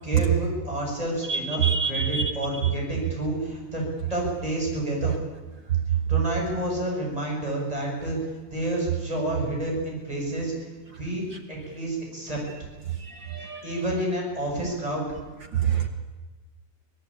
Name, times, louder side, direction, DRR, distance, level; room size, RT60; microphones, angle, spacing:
voice 1, 0.0-3.8 4.1-5.2 6.1-8.2 8.5-10.5 11.0-12.4 13.6-15.1, right 1 dB, 10° right, -1 dB, 7.0 m, -29 dB
voice 2, 1.3-2.3 13.1-13.6 15.6-15.9, right 7 dB, 75° right, 5 dB, 1.0 m, -26 dB
25.0 x 18.0 x 8.7 m, 1.2 s
omnidirectional pair, 3.9 m